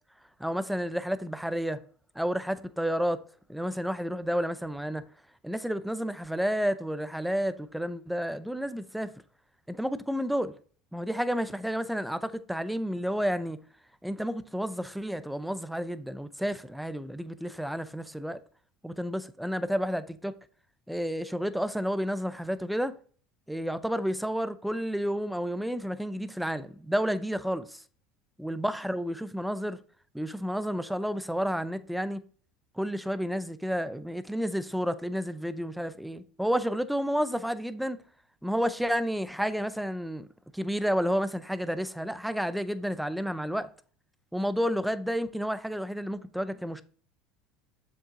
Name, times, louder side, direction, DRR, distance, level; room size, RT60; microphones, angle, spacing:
voice 1, 0.4-1.8 2.2-3.2 3.5-5.0 5.4-9.1 9.7-10.5 10.9-13.6 14.0-18.4 18.8-20.3 20.9-23.0 23.5-27.8 28.4-29.8 30.1-32.2 32.8-38.0 38.4-40.3 40.5-43.7 44.3-46.8, equal, ahead, 0.6 m, -31 dB
7.2 x 5.4 x 2.6 m
hypercardioid pair, 90°, 0 cm